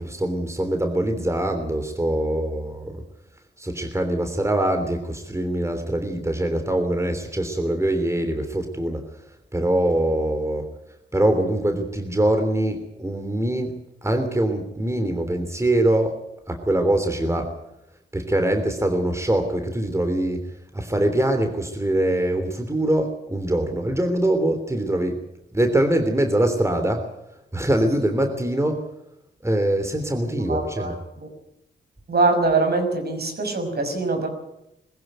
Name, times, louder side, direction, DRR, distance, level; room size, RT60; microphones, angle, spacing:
voice 1, 0.0-3.0 3.6-9.0 9.5-10.7 11.1-13.7 14.0-16.1 16.5-17.5 18.1-25.2 25.5-27.0 27.5-28.8 29.4-31.0, right 1 dB, 15° right, 6 dB, 3.3 m, -23 dB
voice 2, 30.5-31.3 32.1-34.3, right 3 dB, 55° right, 5 dB, 6.0 m, -23 dB
21.5 x 15.0 x 9.2 m, 0.85 s
cardioid pair, 65°, 20 cm